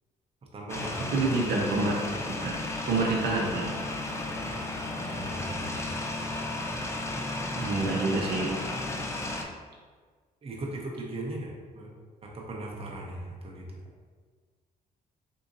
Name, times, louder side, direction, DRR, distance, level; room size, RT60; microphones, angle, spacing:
voice 1, 0.5-1.0 4.1-4.6 5.0-5.7 10.4-11.9 12.2-13.7, right 1 dB, 35° right, -2 dB, 0.8 m, -39 dB
sound 1, 0.7-9.4, left 2 dB, 15° left, 0.5 m, -34 dB
voice 2, 1.1-2.0 2.4-2.6 2.9-3.8 7.5-8.6, right 3 dB, 75° right, -2 dB, 0.6 m, -27 dB
3.7 x 2.8 x 2.6 m, 1.5 s
cardioid pair, 75°, 17 cm